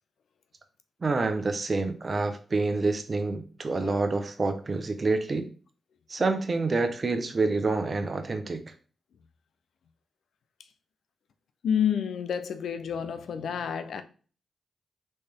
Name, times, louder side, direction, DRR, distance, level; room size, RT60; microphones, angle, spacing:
voice 1, 1.0-5.5 6.1-8.6, right 3 dB, 45° right, 0.7 m, -27 dB
voice 2, 11.6-14.0, left 8 dB, 75° left, 0.4 m, -29 dB
4.3 x 3.3 x 3.5 m
supercardioid pair, 45°, 0 cm